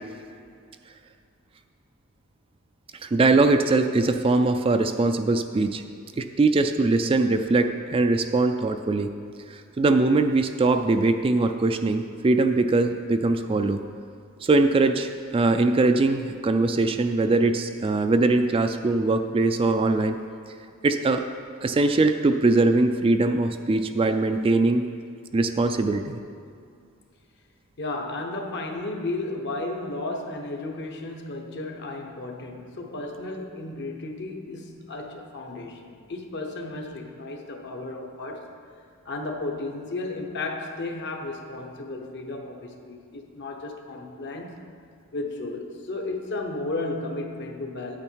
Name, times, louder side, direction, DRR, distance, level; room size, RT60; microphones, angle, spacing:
voice 1, 3.0-5.8 6.2-9.1 9.8-13.8 14.4-20.2 20.8-21.2 21.6-24.8 25.3-26.2, right 3 dB, 25° right, 7 dB, 0.3 m, -21 dB
voice 2, 27.8-38.5 39.0-44.6 45.1-48.0, left 2 dB, 55° left, 3 dB, 1.0 m, -34 dB
8.8 x 8.7 x 4.6 m, 2.4 s
head